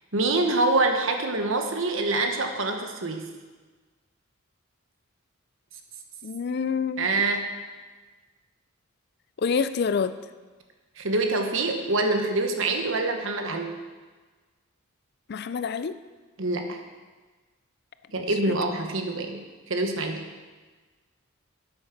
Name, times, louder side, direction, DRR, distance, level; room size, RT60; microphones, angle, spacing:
voice 1, 0.1-3.2 7.0-7.5 11.0-13.7 16.4-16.8 18.1-20.2, right 2 dB, 65° right, 4 dB, 1.2 m, -25 dB
voice 2, 6.2-7.1 9.4-10.2 15.3-16.0, left 5 dB, 50° left, 12 dB, 0.4 m, -27 dB
8.8 x 8.5 x 5.9 m, 1.4 s
head